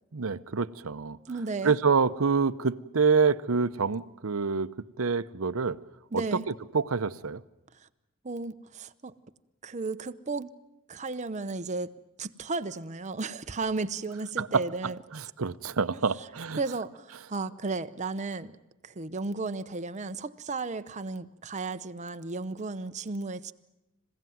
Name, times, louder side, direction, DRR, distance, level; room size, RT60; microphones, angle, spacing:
voice 1, 0.1-1.2 1.6-4.7 5.0-5.8 6.1-6.2 6.7-7.4 14.4-16.6, right 5 dB, 80° right, 0.8 m, -27 dB
voice 2, 1.3-1.8 6.1-6.5 8.2-9.1 9.6-10.5 10.9-11.9 12.2-15.0 15.9-16.3 16.6-18.5 18.8-23.5, right 3 dB, 35° right, 0.8 m, -34 dB
27.0 x 16.0 x 9.3 m
head